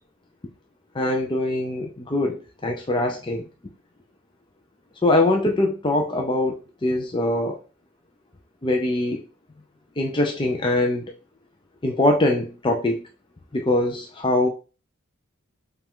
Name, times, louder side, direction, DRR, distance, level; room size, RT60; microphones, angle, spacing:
voice 1, 0.9-3.4 5.0-7.6 8.6-9.2 10.0-11.0 11.8-13.0 13.5-14.5, left 2 dB, 25° left, 0.5 m, -22 dB
5.5 x 2.5 x 3.6 m
head